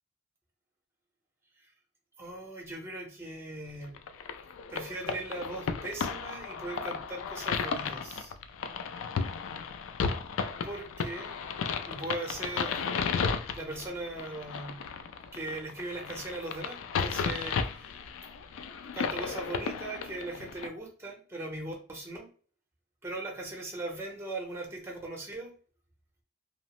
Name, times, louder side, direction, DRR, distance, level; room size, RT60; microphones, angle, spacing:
voice 1, 2.2-4.0 4.7-8.3 10.6-11.4 11.9-13.0 13.5-14.9 15.3-18.1 18.9-22.3 23.0-25.5, right 2 dB, 10° right, 1 dB, 0.7 m, -39 dB
sound 1, 3.9-20.7, left 5 dB, 75° left, 0.3 m, -34 dB
2.8 x 2.0 x 2.9 m, 0.42 s
head